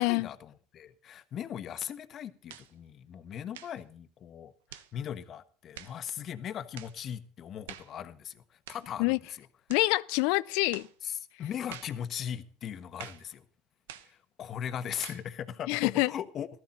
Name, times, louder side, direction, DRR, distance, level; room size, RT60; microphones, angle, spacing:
voice 1, 0.0-9.4 11.0-13.4 13.9-16.5, left 9 dB, 45° left, 1.3 m, -39 dB
sound 1, 2.5-2.7 3.5-3.8 4.7-4.9 5.7-6.0 6.7-7.0 7.7-8.0 8.7-8.9 9.7-9.9 10.7-10.9 11.7-12.0 13.0-13.3 13.9-14.1 15.0-15.3, right 11 dB, 90° right, 1.0 m, -47 dB
voice 2, 9.7-10.9 15.7-16.1, left 24 dB, 75° left, 0.5 m, -26 dB
14.5 x 13.5 x 4.0 m
supercardioid pair, 90°, 0 cm